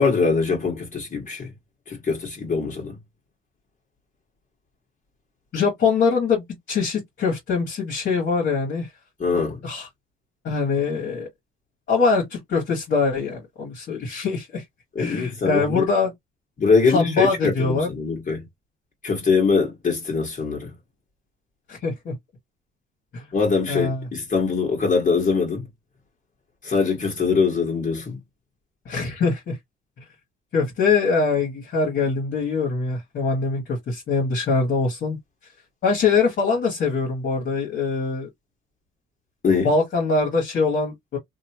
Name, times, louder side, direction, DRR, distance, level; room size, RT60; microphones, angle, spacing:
voice 1, 0.0-1.5 1.9-3.0 9.2-9.6 15.0-15.8 16.6-18.5 19.0-20.7 23.3-25.6 26.6-28.2 39.4-39.7, left 5 dB, 40° left, 1.8 m, -22 dB
voice 2, 5.5-8.9 9.3-9.9 10.4-11.3 11.9-14.6 15.0-16.1 16.9-17.9 21.7-22.1 23.1-23.2 23.7-24.1 28.9-29.6 30.5-35.2 35.8-38.3 39.6-41.2, left 4 dB, 60° left, 1.8 m, -23 dB
2.9 x 2.8 x 2.9 m
cardioid pair, 90°, 20 cm